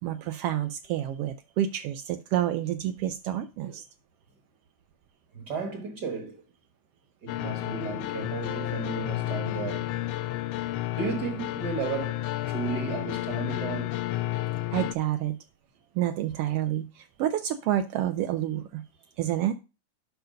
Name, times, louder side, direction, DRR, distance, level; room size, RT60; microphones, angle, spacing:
voice 1, 0.0-3.8 14.7-15.4 15.9-18.8 19.2-19.5, right 12 dB, 90° right, 1.3 m, -29 dB
voice 2, 5.3-6.4 7.2-9.9 11.0-14.0, right 5 dB, 45° right, 1.5 m, -34 dB
sound 1, 7.3-14.9, left 15 dB, 80° left, 1.5 m, -31 dB
7.9 x 5.7 x 5.0 m
omnidirectional pair, 3.3 m